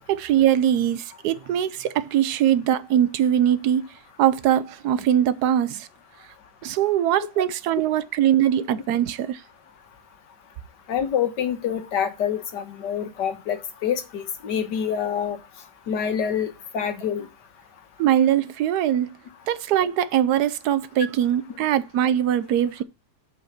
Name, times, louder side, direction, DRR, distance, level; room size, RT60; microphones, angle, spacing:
voice 1, 0.1-3.9 4.2-5.9 6.6-9.4 18.0-19.2 19.5-22.8, right 10 dB, 70° right, 1.2 m, -22 dB
voice 2, 10.9-15.4 15.9-17.3, left 8 dB, 85° left, 1.8 m, -26 dB
7.9 x 4.8 x 5.7 m
omnidirectional pair, 1.8 m